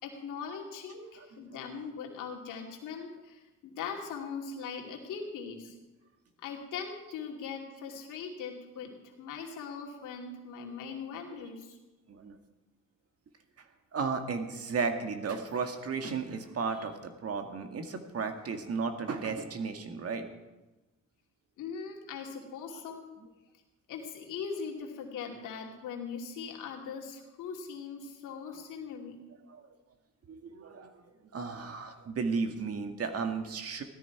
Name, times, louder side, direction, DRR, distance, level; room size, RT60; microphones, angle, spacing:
voice 1, 0.0-5.8 6.4-8.9 9.2-11.8 21.6-23.1 23.9-29.2, left 6 dB, 90° left, 0 dB, 2.6 m, -40 dB
voice 2, 13.9-20.3 22.7-22.8 23.2-23.3 29.5-29.6 30.3-30.9 31.3-33.8, right 5 dB, 50° right, 6 dB, 1.8 m, -34 dB
16.5 x 13.0 x 4.7 m, 1.1 s
cardioid pair, 90°, 30 cm